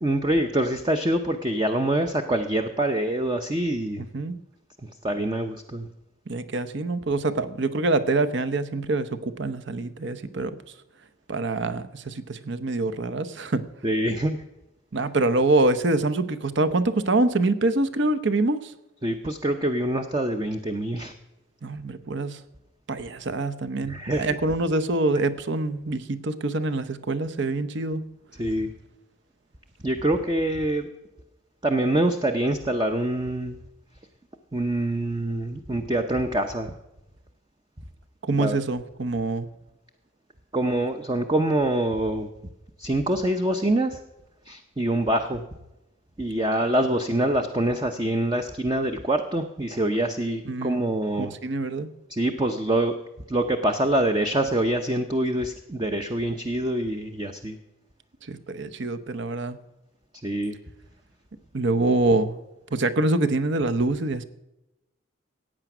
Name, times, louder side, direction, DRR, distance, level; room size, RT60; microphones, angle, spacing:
voice 1, 0.0-4.0 5.0-5.9 13.8-14.4 19.0-21.1 23.9-24.3 28.4-28.7 29.8-30.8 31.6-33.6 34.5-36.7 38.4-38.6 40.5-42.3 42.8-44.0 44.5-45.4 46.2-51.3 52.1-52.9 53.3-57.6 60.2-60.5, right 1 dB, 20° right, 6 dB, 0.6 m, -25 dB
voice 2, 6.3-10.6 11.3-13.7 14.9-18.7 21.6-22.4 22.9-28.0 38.2-39.5 50.5-50.8 51.1-51.9 58.3-59.6 61.5-62.3 62.7-64.2, right 2 dB, 55° right, 11 dB, 0.8 m, -25 dB
15.0 x 9.0 x 6.0 m, 0.96 s
head